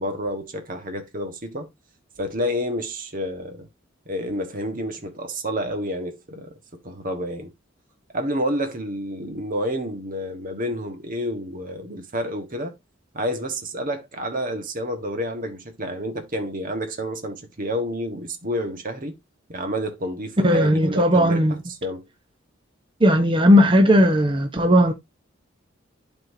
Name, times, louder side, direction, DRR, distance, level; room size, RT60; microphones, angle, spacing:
voice 1, 0.0-1.7 2.2-3.7 4.0-6.6 6.8-7.5 8.1-12.8 13.1-19.1 19.5-21.4 21.7-22.0, equal, 45° right, 1.4 m, -29 dB
voice 2, 20.4-21.5 23.0-24.9, equal, 25° right, 1.0 m, -16 dB
11.5 x 4.4 x 2.7 m
head